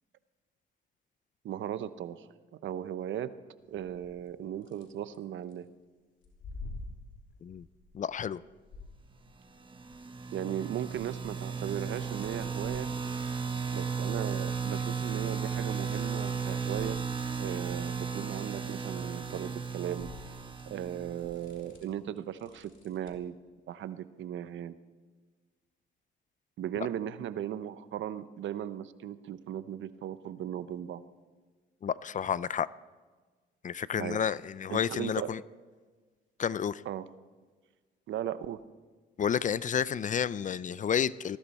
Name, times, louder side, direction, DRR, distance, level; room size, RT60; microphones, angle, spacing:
voice 1, 1.4-2.3 2.6-3.3 3.7-5.7 10.3-12.9 13.7-17.0 17.3-20.4 20.7-23.3 23.7-24.8 26.6-31.0 34.0-34.2 34.7-35.3 36.9-37.0 38.1-38.6, right 10 dB, 70° right, 14 dB, 0.8 m, -37 dB
sound 1, 3.7-4.3 4.6-5.6 6.2-9.5 9.8-16.2 16.5-23.3, left 3 dB, 70° left, 3.2 m, -51 dB
voice 2, 7.9-8.4 31.8-32.7 33.6-35.4 36.4-36.8 39.2-41.4, left 8 dB, 40° left, 19 dB, 0.4 m, -30 dB
sound 2, 9.7-21.5, right 5 dB, 25° right, 1.2 m, -35 dB
19.5 x 15.0 x 4.3 m, 1.4 s
cardioid pair, 90°, 20 cm